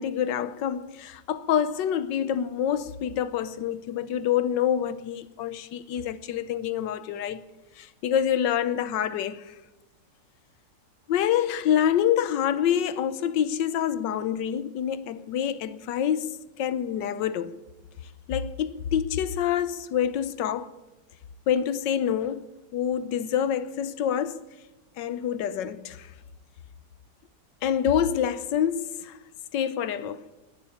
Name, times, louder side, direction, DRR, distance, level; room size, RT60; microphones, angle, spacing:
voice 1, 0.0-7.4 7.8-9.5 11.1-17.6 18.3-20.7 21.5-22.4 22.7-24.4 25.0-26.1 27.6-29.2 29.5-30.2, left 9 dB, 80° left, 1.4 m, -27 dB
19.0 x 7.1 x 9.7 m
omnidirectional pair, 1.9 m